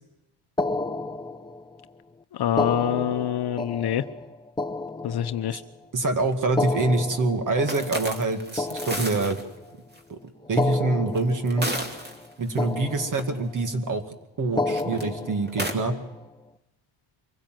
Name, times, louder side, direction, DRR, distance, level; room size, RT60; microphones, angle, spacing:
sound 1, 0.6-1.8 2.5-5.8 6.4-9.7 10.4-12.3 12.6-13.6 14.4-16.3, left 2 dB, 10° left, 0.8 m, -31 dB
voice 1, 2.4-4.0 5.0-5.6, left 10 dB, 55° left, 11 dB, 0.9 m, -25 dB
voice 2, 5.9-9.4 10.1-11.7 12.4-14.0 14.4-15.9, right 2 dB, 40° right, 8 dB, 2.2 m, -25 dB
sound 2, 7.7-9.4 10.0-10.1 11.1-12.6 13.0-13.2 14.7-15.0 15.5-15.7, right 1 dB, 20° right, 2.5 m, -32 dB
24.0 x 16.0 x 7.7 m, 0.96 s
cardioid pair, 115°, 47 cm